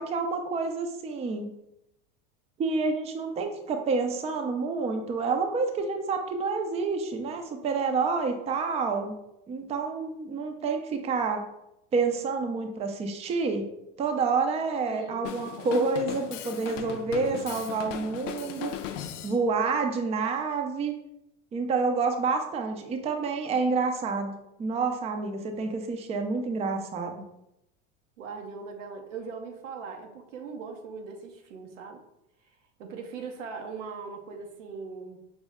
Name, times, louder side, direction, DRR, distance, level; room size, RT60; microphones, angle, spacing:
voice 1, 0.0-1.5 2.6-9.2 9.5-11.4 11.9-13.7 14.0-18.7 19.2-21.0 21.5-27.2, right 4 dB, 20° right, 5 dB, 0.4 m, -28 dB
voice 2, 14.9-15.2 28.2-32.0 32.8-35.2, right 5 dB, 90° right, 4 dB, 0.8 m, -40 dB
Drum kit, 15.2-19.4, left 10 dB, 80° left, 0.5 m, -38 dB
5.3 x 2.1 x 3.5 m, 0.85 s
supercardioid pair, 105°, 37 cm